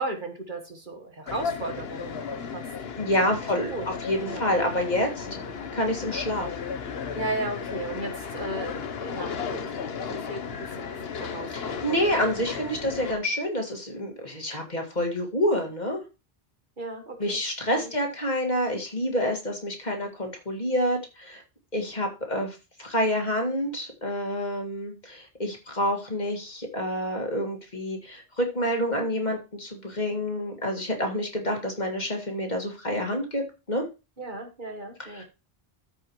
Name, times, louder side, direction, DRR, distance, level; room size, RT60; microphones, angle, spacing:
voice 1, 0.0-2.7 3.7-3.9 4.2-4.5 5.2-5.4 7.1-9.6 10.1-12.0 16.8-17.4 17.7-17.9 34.2-35.2, right 2 dB, 50° right, 4 dB, 1.7 m, -35 dB
sound 1, 1.3-13.2, left 6 dB, 75° left, 1.1 m, -35 dB
voice 2, 3.0-3.7 4.1-5.3 5.7-6.5 11.5-16.0 17.2-21.4 21.7-33.8 35.1-35.2, equal, 45° left, 2 dB, 2.1 m, -28 dB
14.0 x 5.4 x 3.1 m, 0.28 s
omnidirectional pair, 1.0 m